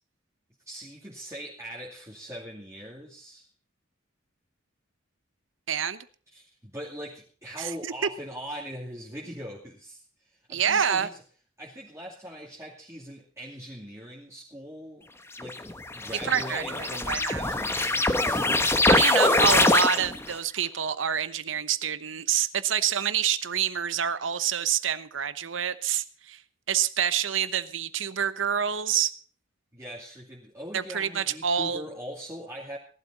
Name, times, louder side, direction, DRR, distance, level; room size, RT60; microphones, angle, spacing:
voice 1, 0.7-3.5 6.3-10.0 10.3-11.2 11.6-15.1 15.4-18.2 19.1-19.8 27.0-27.2 29.7-32.8, equal, 15° right, -4 dB, 2.5 m, -41 dB
voice 2, 5.7-6.0 7.6-7.9 10.5-11.1 16.3-17.5 18.3-18.4 18.9-26.4 26.7-29.1 30.7-31.8, right 8 dB, 70° right, 14 dB, 0.9 m, -27 dB
sound 1, 15.4-20.3, left 2 dB, 15° left, 1.0 m, -23 dB
18.0 x 12.0 x 4.2 m, 0.42 s
head